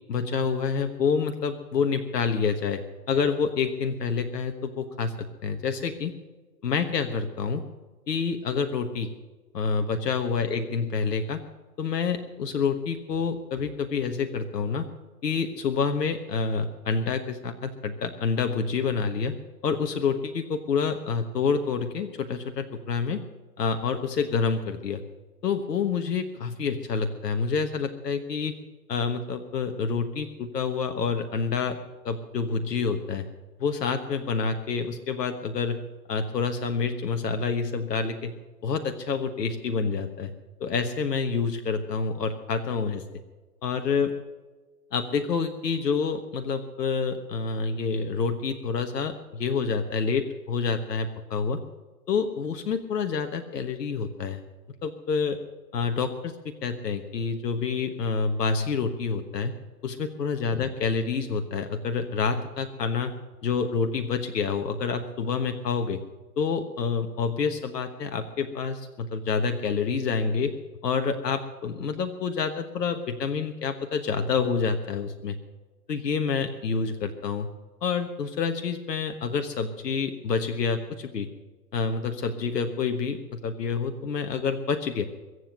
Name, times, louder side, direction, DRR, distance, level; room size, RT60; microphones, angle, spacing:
voice 1, 0.1-2.8 3.1-6.1 6.6-7.6 8.1-9.1 9.5-11.4 11.8-14.9 15.2-19.4 19.6-23.2 23.6-25.0 25.4-28.5 28.9-31.8 32.0-33.3 33.6-35.8 36.1-38.3 38.6-40.3 40.6-43.2 43.6-44.1 44.9-51.6 52.1-54.4 54.8-55.4 55.7-59.5 59.8-63.1 63.4-66.0 66.4-70.5 70.8-75.4 75.9-77.5 77.8-81.3 81.7-85.1, left 5 dB, 80° left, 8 dB, 1.4 m, -28 dB
22.5 x 8.0 x 6.7 m, 1.3 s
hypercardioid pair, 120°, 48 cm